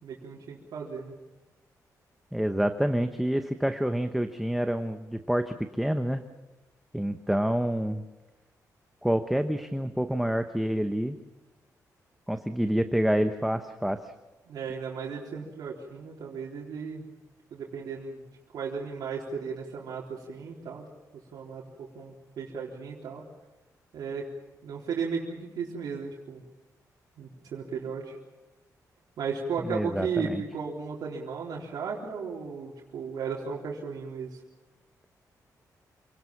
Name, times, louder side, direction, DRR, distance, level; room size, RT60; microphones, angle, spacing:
voice 1, 0.0-1.1 14.5-17.1 17.5-18.2 18.5-20.9 21.3-23.2 23.9-24.2 24.6-26.4 27.2-28.2 29.2-34.4, right 5 dB, 80° right, -3 dB, 3.8 m, -35 dB
voice 2, 2.3-6.2 6.9-8.0 9.0-11.2 12.3-14.1 29.7-30.4, equal, ahead, 7 dB, 0.9 m, -27 dB
27.5 x 19.5 x 7.2 m, 1.1 s
wide cardioid pair, 155°, 7 cm